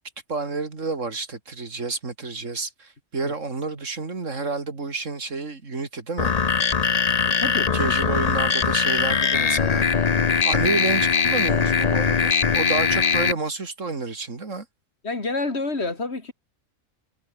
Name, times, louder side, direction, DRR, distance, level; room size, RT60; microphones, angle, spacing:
voice 1, 0.3-6.3 7.7-10.1 10.4-14.7, right 3 dB, 65° right, 3.2 m, -30 dB
sound 1, 6.2-13.3, left 6 dB, 35° left, 0.8 m, -21 dB
voice 2, 7.3-7.7 15.0-16.3, left 3 dB, 50° left, 3.4 m, -28 dB
omnidirectional pair, 1.4 m